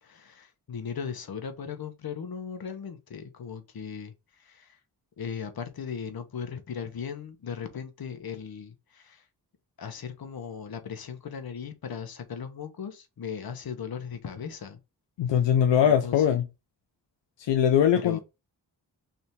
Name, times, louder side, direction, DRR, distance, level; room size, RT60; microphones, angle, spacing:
voice 1, 0.0-4.8 5.2-9.2 9.8-14.8 15.3-15.4 15.8-16.4 17.9-18.2, left 7 dB, 55° left, 1.0 m, -38 dB
voice 2, 15.2-16.4 17.4-18.2, left 9 dB, 85° left, 0.6 m, -21 dB
3.4 x 2.7 x 4.3 m
cardioid pair, 50°, 43 cm